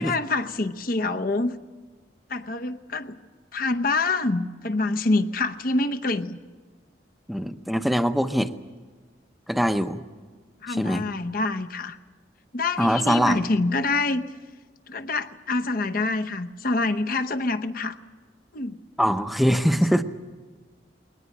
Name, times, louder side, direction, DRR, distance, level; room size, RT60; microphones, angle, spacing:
voice 1, 0.0-1.5 2.3-3.2 3.5-6.4 10.6-12.0 12.5-14.2 14.9-18.0 18.5-18.8, left 3 dB, 50° left, 8 dB, 0.9 m, -26 dB
voice 2, 7.3-8.5 9.5-10.0 10.7-11.1 12.8-13.4 19.0-20.0, equal, ahead, 9 dB, 0.7 m, -22 dB
21.5 x 19.0 x 8.4 m, 1.4 s
head